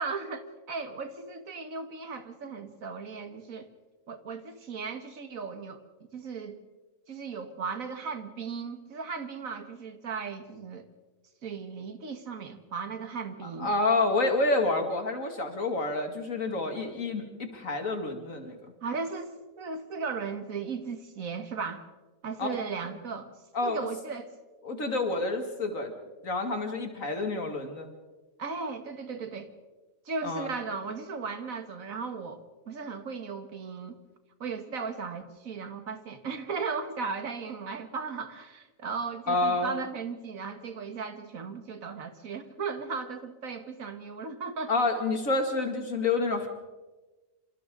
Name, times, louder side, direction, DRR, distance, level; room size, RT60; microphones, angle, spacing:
voice 1, 0.0-3.7 4.1-5.8 6.1-6.6 7.1-10.9 11.4-13.7 18.8-21.8 22.2-23.3 23.6-24.3 28.4-29.5 30.1-34.0 34.4-44.7, right 5 dB, 80° right, 8 dB, 2.0 m, -36 dB
voice 2, 13.4-18.7 22.4-22.6 23.5-23.9 24.6-25.9 26.2-27.9 30.2-30.5 39.3-39.8 44.7-46.5, left 2 dB, 75° left, 4 dB, 2.9 m, -28 dB
27.0 x 26.5 x 3.9 m, 1.2 s
omnidirectional pair, 1.4 m